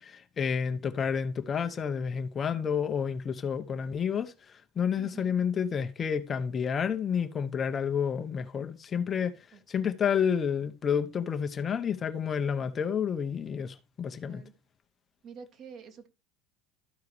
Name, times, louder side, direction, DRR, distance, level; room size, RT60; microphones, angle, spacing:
voice 1, 0.0-9.3 9.7-14.4, left 7 dB, 30° left, 0.8 m, -30 dB
voice 2, 5.0-5.4 9.5-9.6 14.2-14.5 15.2-16.1, right 6 dB, 45° right, 1.7 m, -47 dB
13.5 x 4.7 x 3.2 m
hypercardioid pair, 75°, 0 cm